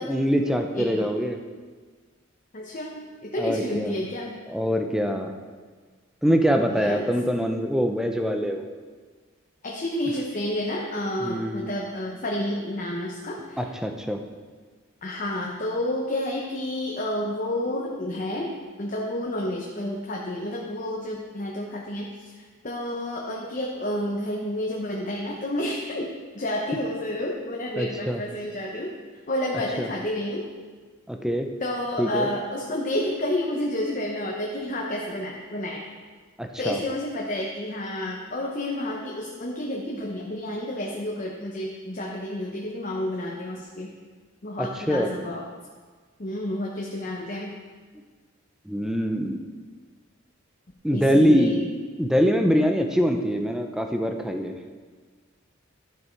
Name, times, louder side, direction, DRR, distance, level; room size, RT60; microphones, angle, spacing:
voice 1, 0.0-1.4 3.4-4.0 4.5-5.4 6.2-8.7 11.2-11.7 13.6-14.2 27.8-28.2 29.8-29.9 31.1-31.5 32.0-32.3 36.4-36.8 44.6-45.1 48.7-49.5 50.8-51.6 52.0-54.5, equal, 5° right, 4 dB, 0.6 m, -24 dB
voice 2, 0.7-1.1 2.5-4.3 6.6-7.0 9.6-13.7 15.0-26.1 26.3-28.9 29.3-30.5 31.6-35.8 36.6-43.9 44.4-45.5 46.2-47.6 50.9-51.6, left 1 dB, 40° left, -2 dB, 0.9 m, -30 dB
12.0 x 6.7 x 4.6 m, 1.5 s
head